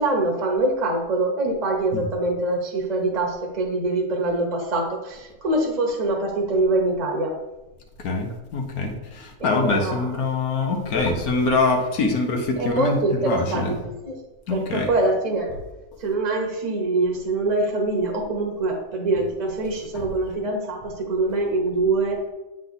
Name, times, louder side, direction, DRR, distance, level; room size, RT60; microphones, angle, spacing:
voice 1, 0.0-7.3 9.4-10.1 12.6-14.2 14.5-15.5 16.0-22.2, right 2 dB, 30° right, 0 dB, 1.0 m, -24 dB
voice 2, 8.0-13.0 13.2-13.7 14.5-14.9 19.6-20.0, left 3 dB, 80° left, 2 dB, 1.4 m, -24 dB
8.2 x 3.9 x 4.0 m, 1.0 s
omnidirectional pair, 1.6 m